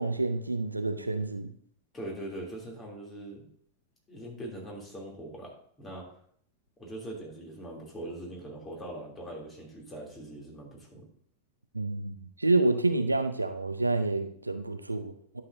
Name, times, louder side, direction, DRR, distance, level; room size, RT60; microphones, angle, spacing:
voice 1, 0.0-1.5 11.7-15.4, right 2 dB, 80° right, 9 dB, 0.6 m, -28 dB
voice 2, 1.9-3.5 4.1-6.0 6.8-11.0, right 1 dB, 20° left, -1 dB, 2.8 m, -41 dB
11.0 x 6.5 x 2.6 m, 0.62 s
figure-of-eight pair, 90°, 0 cm